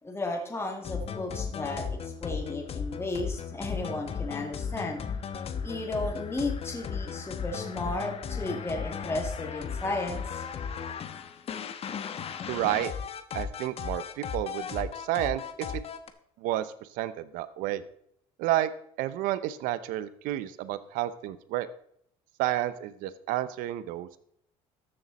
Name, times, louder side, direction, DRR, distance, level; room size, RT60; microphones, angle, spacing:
voice 1, 0.0-5.1 5.6-10.5, left 2 dB, 20° left, 1 dB, 2.3 m, -34 dB
sound 1, 0.8-16.1, left 6 dB, 45° left, 1.1 m, -36 dB
voice 2, 12.5-12.9 13.3-15.8 16.4-17.8 18.4-18.7 19.0-21.7 22.4-24.2, right 14 dB, 80° right, 14 dB, 0.7 m, -30 dB
13.5 x 6.7 x 4.1 m, 0.70 s
supercardioid pair, 90°, 14 cm